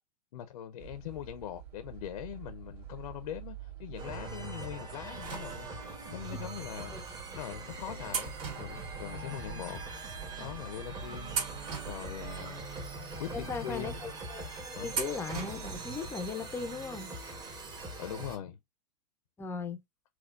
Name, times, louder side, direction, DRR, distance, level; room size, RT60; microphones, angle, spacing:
voice 1, 0.3-7.0 7.3-9.9 10.4-12.7 13.2-14.0 14.7-14.9 18.0-18.6, left 11 dB, 75° left, 0.6 m, -42 dB
sound 1, 0.8-16.3, right 11 dB, 75° right, 2.0 m, -49 dB
sound 2, 4.0-18.4, right 2 dB, 20° right, 1.0 m, -42 dB
sound 3, 5.2-6.0 6.9-7.0 8.1-9.5 9.8-9.9 10.6-10.9 11.3-12.6 13.1-13.2 14.9-15.9 16.2-16.3 17.4-17.5 17.8-17.9, right 6 dB, 50° right, 1.8 m, -39 dB
voice 2, 13.3-14.4 14.8-17.2 19.4-19.8, left 4 dB, 10° left, 0.5 m, -37 dB
4.3 x 2.3 x 2.3 m
hypercardioid pair, 130°, 21 cm